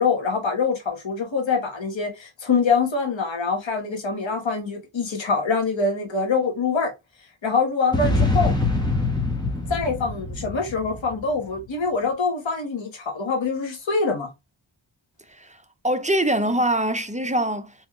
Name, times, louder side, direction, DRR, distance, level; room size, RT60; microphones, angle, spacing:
voice 1, 0.0-6.9 7.4-8.5 9.7-14.3, left 4 dB, 65° left, 1.2 m, -24 dB
sound 1, 7.9-11.4, left 3 dB, 10° left, 0.9 m, -24 dB
voice 2, 15.8-17.7, right 1 dB, 15° right, 0.4 m, -23 dB
3.8 x 2.9 x 2.8 m
wide cardioid pair, 95°, 48 cm